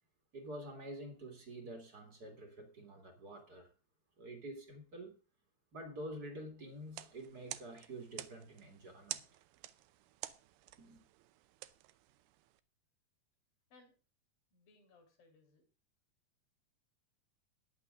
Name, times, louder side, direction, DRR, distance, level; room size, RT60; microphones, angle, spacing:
voice 1, 0.3-3.7 4.2-5.2 5.7-9.2 10.8-11.0, right 1 dB, 35° right, 1.7 m, -48 dB
sound 1, 6.8-12.6, right 15 dB, 80° right, 2.6 m, -50 dB
voice 2, 14.5-15.7, left 3 dB, 60° left, 4.9 m, -65 dB
14.5 x 10.5 x 3.7 m
omnidirectional pair, 4.5 m